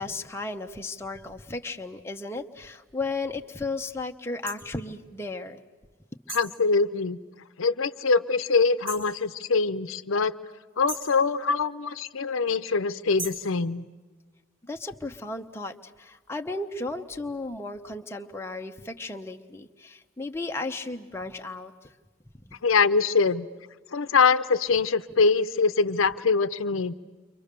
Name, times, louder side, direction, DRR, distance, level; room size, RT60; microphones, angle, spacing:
voice 1, 0.0-5.6 14.6-21.9 22.4-22.6, left 3 dB, 10° left, 3 dB, 0.8 m, -35 dB
sound 1, 4.5-4.6 6.3-6.6 8.9-9.1 10.9-11.2 13.2-13.5, right 2 dB, 80° right, 6.6 m, -37 dB
voice 2, 6.3-7.2 7.6-10.3 10.8-13.8 22.6-23.5 23.9-26.9, left 4 dB, 80° left, 12 dB, 0.7 m, -23 dB
29.5 x 24.5 x 6.8 m, 1.4 s
head